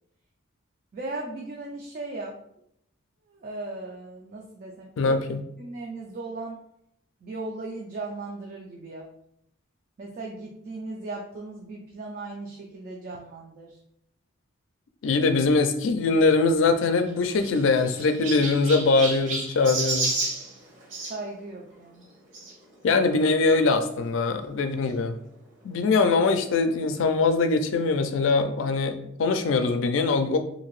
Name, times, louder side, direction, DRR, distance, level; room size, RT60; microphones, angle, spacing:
voice 1, 0.9-2.4 3.3-5.1 5.6-6.6 7.2-9.1 10.0-13.8 21.1-22.1, right 2 dB, 45° right, -1 dB, 0.3 m, -37 dB
voice 2, 5.0-5.4 15.0-20.1 22.8-25.2 25.6-30.4, left 3 dB, 80° left, 8 dB, 0.4 m, -22 dB
Chirp tweet, 16.8-21.1 22.3-22.5 23.2-23.3 23.5-23.6 24.9-25.0, right 3 dB, 65° right, 1.0 m, -31 dB
2.8 x 2.6 x 3.0 m, 0.75 s
head